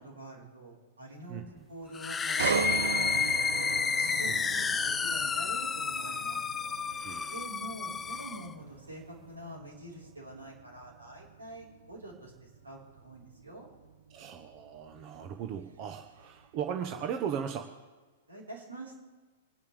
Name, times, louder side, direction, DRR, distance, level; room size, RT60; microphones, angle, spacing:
voice 1, 0.0-6.4 7.3-13.7 18.3-19.0, right 1 dB, 75° right, -4 dB, 4.6 m, -46 dB
voice 2, 1.3-1.6 4.3-4.4 7.0-7.4 14.1-17.6, right 8 dB, 35° right, 5 dB, 1.0 m, -37 dB
sound 1, 1.9-8.5, left 6 dB, 15° left, 0.4 m, -31 dB
sound 2, 2.4-16.2 16.6-16.9, right 6 dB, 60° right, 0.7 m, -39 dB
26.0 x 10.0 x 3.5 m, 1.3 s
figure-of-eight pair, 105°, 0 cm